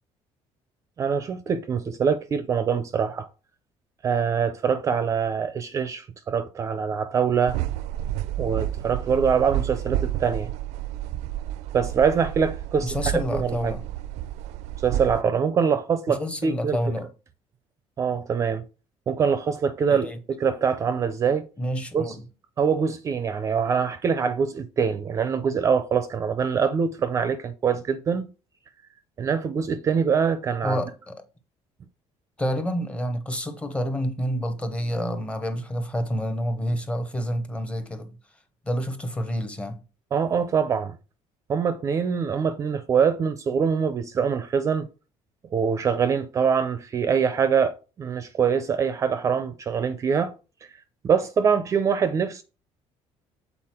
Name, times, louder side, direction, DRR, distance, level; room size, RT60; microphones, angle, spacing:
voice 1, 1.0-3.3 4.0-7.6 8.4-10.5 11.7-13.0 13.3-13.7 14.8-16.8 18.0-18.6 19.1-21.5 21.9-22.1 22.6-28.3 29.2-30.8 40.1-41.0 41.5-44.9 45.5-50.3 51.0-52.4, right 6 dB, 25° right, 0.4 m, -24 dB
sound 1, 7.5-15.2, right 13 dB, 85° right, 0.4 m, -30 dB
voice 2, 12.8-13.8 16.1-17.1 19.9-20.2 21.6-22.2 30.6-31.3 32.4-38.2 38.6-39.8, equal, 10° left, 0.8 m, -28 dB
7.6 x 4.0 x 4.3 m
cardioid pair, 180°, 11 cm